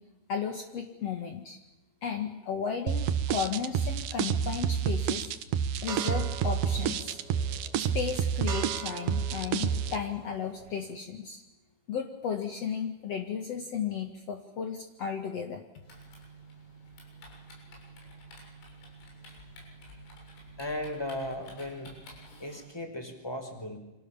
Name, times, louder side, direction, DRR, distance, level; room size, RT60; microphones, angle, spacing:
voice 1, 0.3-1.6 2.0-5.3 5.8-7.2 7.7-11.4 11.9-15.6, left 6 dB, 65° left, 4 dB, 1.6 m, -34 dB
sound 1, 2.9-10.0, right 8 dB, 75° right, 2.0 m, -29 dB
sound 2, 5.9-11.0, right 7 dB, 55° right, 3.8 m, -43 dB
Typing, 15.8-22.7, right 1 dB, 80° left, 9.5 m, -50 dB
voice 2, 20.6-22.0 22.4-23.8, left 1 dB, 5° left, 5 dB, 3.8 m, -36 dB
29.5 x 26.5 x 7.3 m, 1.0 s
omnidirectional pair, 5.8 m